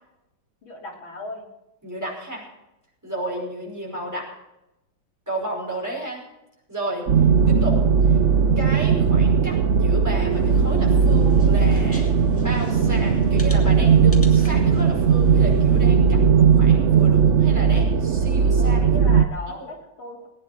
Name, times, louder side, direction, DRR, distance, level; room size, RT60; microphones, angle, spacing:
voice 1, 0.6-1.4 18.6-20.3, left 2 dB, 85° left, -3 dB, 4.0 m, -37 dB
voice 2, 1.8-2.4 3.0-4.3 5.3-6.2 6.7-7.1 7.5-7.8 8.6-12.1 12.4-18.8 19.5-19.7, right 1 dB, 10° right, -4 dB, 5.4 m, -32 dB
sound 1, 7.1-19.2, right 6 dB, 65° right, 0.7 m, -17 dB
sound 2, 10.3-15.9, left 1 dB, 5° left, 1.9 m, -36 dB
19.5 x 9.9 x 4.5 m, 0.91 s
omnidirectional pair, 2.1 m